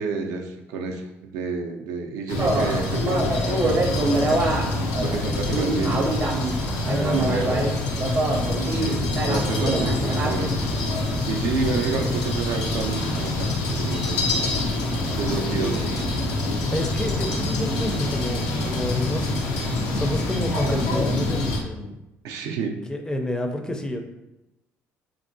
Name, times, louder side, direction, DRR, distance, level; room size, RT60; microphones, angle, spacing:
voice 1, 0.0-4.5 5.0-6.2 7.0-7.6 8.0-8.2 8.6-10.6 11.3-14.5 15.2-16.0 22.2-22.8, right 5 dB, 85° right, 3 dB, 0.4 m, -30 dB
sound 1, 2.3-21.6, left 2 dB, 85° left, 0.5 m, -26 dB
sound 2, 2.4-10.4, right 2 dB, 40° right, 0.6 m, -26 dB
voice 2, 6.6-7.7 9.4-10.0 15.3-15.8 16.7-22.0 22.6-24.0, left 1 dB, 15° left, 4 dB, 0.4 m, -30 dB
2.9 x 2.6 x 2.6 m, 0.93 s
supercardioid pair, 85°, 6 cm